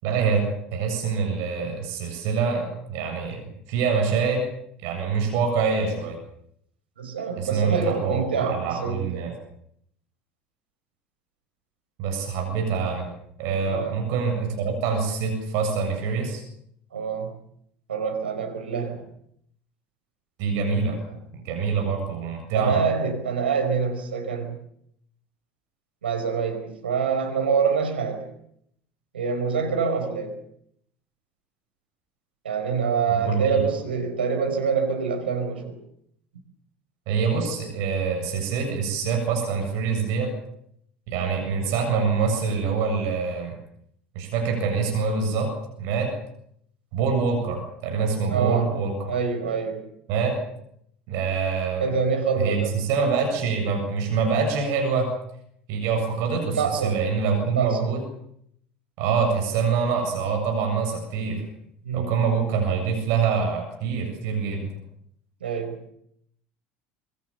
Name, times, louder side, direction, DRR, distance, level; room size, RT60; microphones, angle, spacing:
voice 1, 0.0-4.5 4.8-6.2 7.4-9.3 12.0-13.1 13.4-16.4 20.4-21.0 21.4-22.8 33.1-33.6 37.1-40.3 41.1-43.5 44.1-46.1 46.9-49.1 50.1-50.4 51.1-51.9 52.4-55.2 55.7-58.0 59.0-61.5 61.9-64.7, right 5 dB, 60° right, 4 dB, 7.6 m, -25 dB
voice 2, 7.0-9.2 13.7-13.9 16.9-17.3 17.9-19.0 21.1-21.2 22.5-24.6 26.0-28.2 29.1-30.4 32.4-35.8 48.3-48.7 49.1-49.8 51.8-52.7 56.6-57.0 57.5-57.8 61.8-62.1 65.4-65.8, right 5 dB, 80° right, 5 dB, 4.6 m, -26 dB
25.0 x 23.0 x 7.1 m, 0.72 s
figure-of-eight pair, 65°, 6 cm